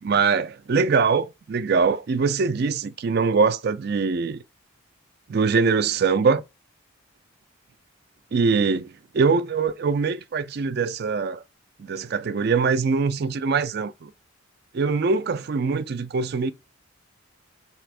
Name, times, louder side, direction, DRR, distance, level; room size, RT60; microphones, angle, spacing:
voice 1, 0.0-4.4 5.3-6.4 8.3-11.4 11.8-14.1 14.7-16.5, right 5 dB, 50° right, 0.4 m, -23 dB
3.3 x 3.0 x 4.7 m
head